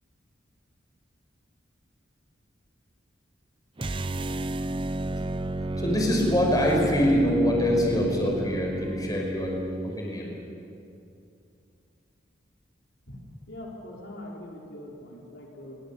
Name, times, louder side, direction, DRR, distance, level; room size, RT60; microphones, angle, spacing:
sound 1, 3.8-10.0, right 2 dB, 25° right, 0.6 m, -31 dB
voice 1, 5.1-9.6 9.8-10.3, left 1 dB, 20° left, -1 dB, 5.4 m, -25 dB
voice 2, 13.5-15.8, left 1 dB, 65° left, -2 dB, 4.0 m, -42 dB
27.0 x 23.5 x 6.9 m, 2.6 s
head